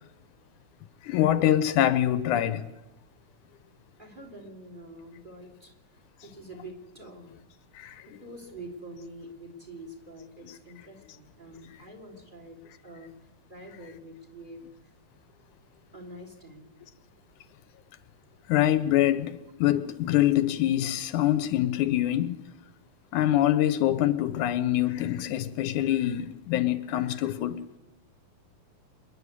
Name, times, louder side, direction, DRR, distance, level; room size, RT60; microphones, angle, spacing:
voice 1, 1.0-2.7 7.8-8.0 18.5-22.4 23.1-27.6, left 12 dB, 80° left, 2.3 m, -25 dB
voice 2, 4.0-7.3 8.0-14.9 15.9-16.7, right 1 dB, 15° right, 3.0 m, -46 dB
26.5 x 10.5 x 9.7 m
omnidirectional pair, 3.5 m